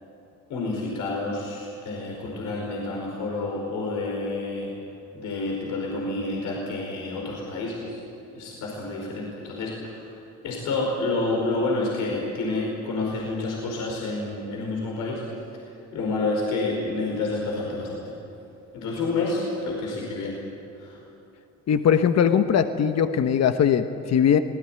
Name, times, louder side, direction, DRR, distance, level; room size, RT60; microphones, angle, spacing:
voice 1, 0.5-4.7 5.1-8.0 8.3-10.0 10.4-15.2 15.7-18.1 18.7-20.3 20.8-21.0, left 2 dB, 90° left, -2 dB, 5.2 m, -29 dB
voice 2, 21.7-24.4, left 8 dB, 60° left, 8 dB, 1.2 m, -20 dB
25.5 x 19.0 x 9.1 m, 2.7 s
cardioid pair, 90°, 30 cm